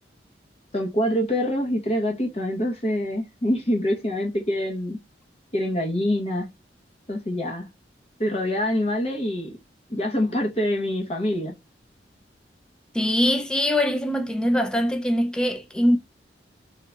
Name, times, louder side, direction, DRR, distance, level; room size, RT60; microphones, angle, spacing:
voice 1, 0.7-5.0 5.5-6.5 7.1-7.7 8.2-9.6 9.9-11.5, equal, 35° left, 0.9 m, -25 dB
voice 2, 12.9-16.0, equal, 5° left, 0.4 m, -22 dB
3.7 x 2.3 x 3.9 m
head